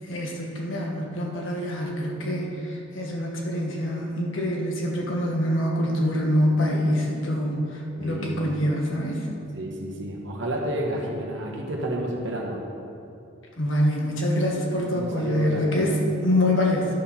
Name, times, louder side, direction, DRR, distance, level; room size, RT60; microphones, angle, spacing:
voice 1, 0.1-9.2 13.6-16.9, left 1 dB, 70° left, -1 dB, 1.4 m, -25 dB
voice 2, 8.0-8.4 9.5-12.6 14.7-15.8, right 1 dB, 65° right, 0 dB, 1.3 m, -30 dB
11.0 x 4.4 x 5.6 m, 2.6 s
head